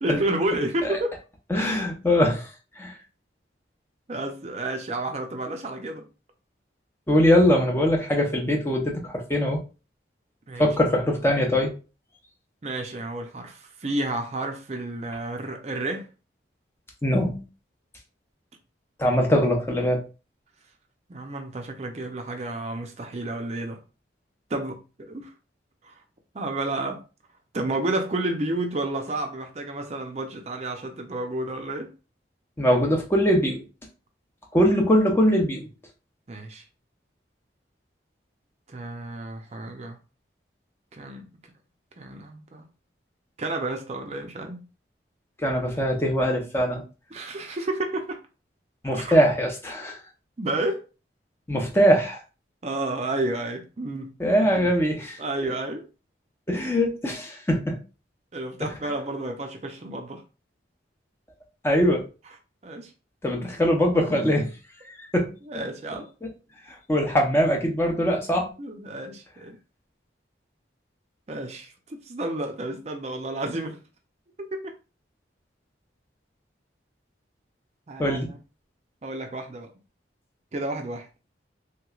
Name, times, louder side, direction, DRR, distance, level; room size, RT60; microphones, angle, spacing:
voice 1, 0.0-1.1 4.1-6.1 10.5-10.7 12.6-16.1 19.1-19.2 21.1-23.8 24.5-25.3 25.8-26.0 26.3-27.0 27.5-31.9 36.3-36.6 38.7-40.0 40.9-41.3 42.0-42.7 43.4-44.6 47.1-48.2 48.9-49.2 50.4-50.8 52.6-54.1 54.6-54.7 55.2-55.9 58.3-60.2 62.6-62.9 65.5-66.1 68.6-69.6 71.3-73.8 74.4-74.7 77.9-78.4 79.0-79.7 80.5-81.1, right 2 dB, 35° right, 0.5 m, -31 dB
voice 2, 1.5-2.5 2.8-3.0 7.1-9.6 10.6-11.7 17.0-17.4 19.0-20.0 32.6-33.6 34.5-35.7 45.4-46.8 48.8-50.0 51.5-52.2 54.2-55.2 56.5-57.8 58.6-58.7 61.6-62.0 63.2-64.5 64.9-65.3 66.9-68.5 78.0-78.3, equal, 15° left, 0.6 m, -22 dB
3.2 x 3.0 x 2.3 m
head